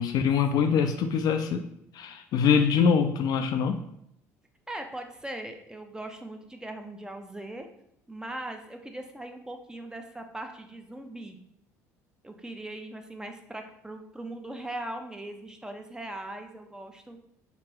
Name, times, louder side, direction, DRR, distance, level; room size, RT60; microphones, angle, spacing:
voice 1, 0.0-1.7 1.9-3.8, left 6 dB, 50° left, 6 dB, 0.3 m, -24 dB
voice 2, 0.7-1.2 4.7-7.7 8.1-11.4 12.2-17.2, right 1 dB, 10° right, 5 dB, 0.6 m, -40 dB
3.3 x 3.0 x 2.9 m, 0.74 s
hypercardioid pair, 60°, 9 cm